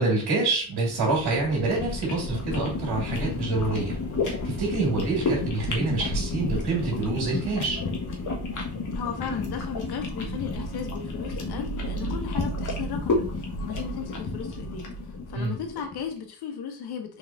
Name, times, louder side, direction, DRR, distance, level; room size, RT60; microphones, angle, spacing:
voice 1, 0.0-4.0 4.2-7.8 15.3-15.5, right 3 dB, 80° right, 1.9 m, -26 dB
sound 1, 0.7-16.0, left 2 dB, 50° left, 1.2 m, -31 dB
voice 2, 8.9-14.8 15.3-17.2, left 7 dB, 80° left, 0.9 m, -35 dB
3.9 x 3.6 x 2.5 m
supercardioid pair, 60°, 39 cm